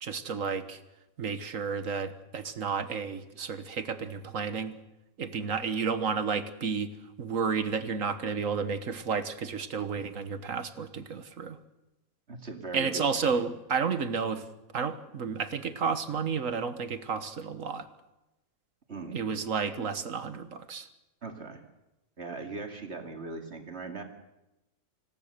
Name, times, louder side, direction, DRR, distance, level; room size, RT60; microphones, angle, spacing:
voice 1, 0.0-0.8 1.2-4.8 5.2-6.9 7.2-11.6 12.7-14.4 14.7-17.9 19.1-20.9, right 5 dB, 60° right, 10 dB, 1.6 m, -31 dB
voice 2, 12.3-13.4 18.9-19.2 21.2-21.6 22.2-24.0, right 3 dB, 45° right, 3 dB, 2.7 m, -39 dB
26.0 x 17.0 x 6.8 m, 0.97 s
omnidirectional pair, 1.5 m